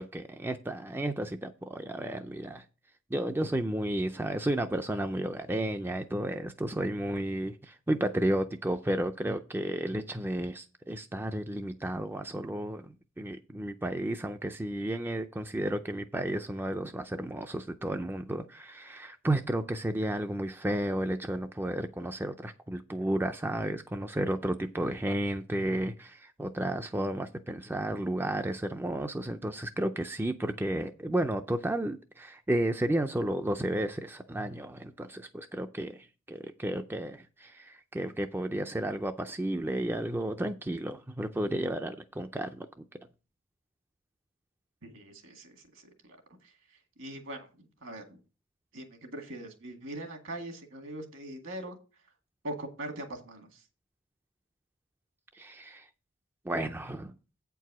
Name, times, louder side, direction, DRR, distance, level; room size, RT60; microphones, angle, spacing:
voice 1, 0.0-2.6 3.1-42.7 55.3-55.9 56.5-57.1, right 1 dB, 10° right, 0.4 m, -32 dB
voice 2, 44.8-46.2 47.0-48.2 48.7-51.8 52.4-53.6, right 1 dB, 65° right, 2.0 m, -41 dB
8.6 x 4.6 x 6.0 m
head